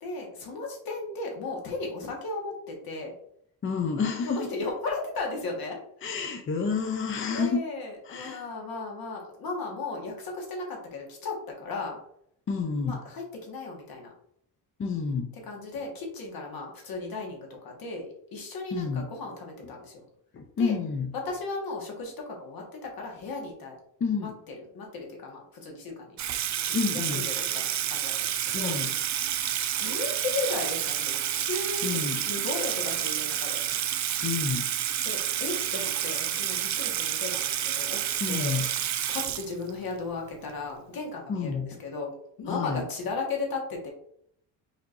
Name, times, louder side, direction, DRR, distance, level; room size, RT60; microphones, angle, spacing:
voice 1, 0.0-3.1 4.3-5.8 7.3-12.0 12.8-14.1 15.5-20.0 20.6-20.8 21.2-23.8 24.2-24.3 24.7-26.1 26.6-28.8 29.8-33.6 35.0-38.6 39.1-42.1 42.4-43.9, left 3 dB, 60° left, 0 dB, 1.6 m, -35 dB
voice 2, 3.6-4.5 6.0-7.6 8.0-8.4 12.5-13.0 14.8-15.3 18.7-19.1 20.3-21.1 24.0-24.4 26.7-27.3 28.5-28.9 31.8-32.2 34.2-34.7 38.2-38.7 41.3-41.7 42.5-42.8, left 5 dB, 30° left, 4 dB, 0.6 m, -29 dB
Water tap faucet / Sink (filling or washing), 26.2-39.9, right 11 dB, 45° right, 0.5 m, -29 dB
4.5 x 4.3 x 2.6 m, 0.69 s
cardioid pair, 105°, 39 cm